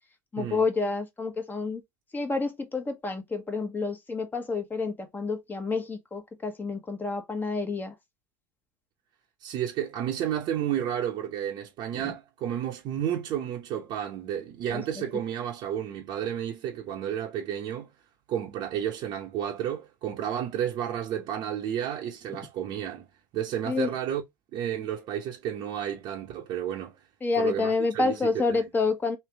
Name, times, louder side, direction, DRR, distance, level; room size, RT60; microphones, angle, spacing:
voice 1, 0.3-1.8 2.1-7.9 11.9-12.1 14.7-14.8 23.7-23.9 27.2-29.2, left 4 dB, 20° left, 1.1 m, -29 dB
voice 2, 9.4-17.9 18.3-23.0 23.3-24.2 24.5-26.9 27.3-28.6, right 10 dB, 50° right, 0.8 m, -31 dB
3.3 x 2.8 x 3.4 m
hypercardioid pair, 80°, 10 cm